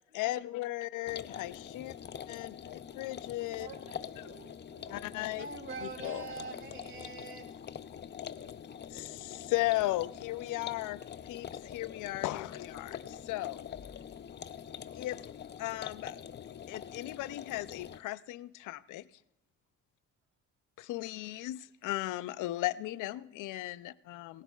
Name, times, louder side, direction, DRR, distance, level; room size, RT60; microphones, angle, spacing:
voice 1, 0.1-1.9 2.3-3.7 4.9-5.5 5.8-6.5 8.9-13.7 14.9-15.2 15.6-16.2 16.7-19.1 20.8-24.4, left 17 dB, 85° left, 16 dB, 0.5 m, -36 dB
sound 1, 1.1-18.0, left 8 dB, 35° left, 0.5 m, -45 dB
voice 2, 3.6-5.3 5.6-6.3, right 6 dB, 85° right, 2 dB, 1.3 m, -54 dB
voice 3, 5.4-7.5, right 4 dB, 40° right, 6 dB, 2.2 m, -43 dB
18.5 x 15.5 x 2.3 m, 0.80 s
cardioid pair, 90°, 30 cm